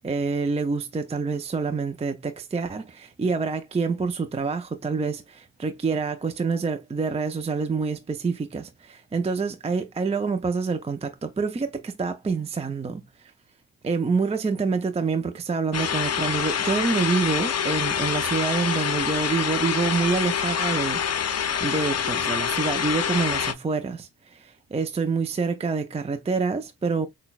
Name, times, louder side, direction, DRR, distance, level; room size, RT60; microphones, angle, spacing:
voice 1, 0.0-13.3 13.8-27.1, right 4 dB, 20° right, 0.4 m, -27 dB
sound 1, 15.7-23.5, left 8 dB, 45° left, 0.6 m, -26 dB
5.8 x 2.2 x 2.3 m
cardioid pair, 80°, 37 cm